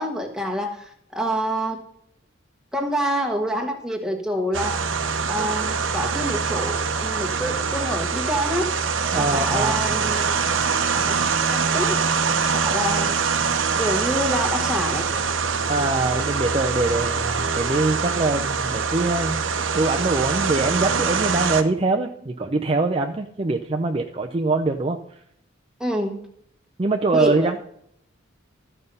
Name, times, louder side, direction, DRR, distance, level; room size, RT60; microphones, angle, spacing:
voice 1, 0.0-1.8 2.7-4.8 5.3-8.7 9.1-10.5 11.0-11.2 11.5-12.0 12.5-13.3 13.8-15.1 25.8-26.2 27.1-27.5, equal, 5° right, 1 dB, 1.4 m, -27 dB
sound 1, 4.5-21.6, right 5 dB, 70° right, 0.8 m, -24 dB
voice 2, 9.1-10.0 15.7-19.4 19.7-25.0 26.8-27.6, right 3 dB, 30° right, 4 dB, 0.5 m, -23 dB
13.0 x 5.5 x 5.4 m, 0.70 s
head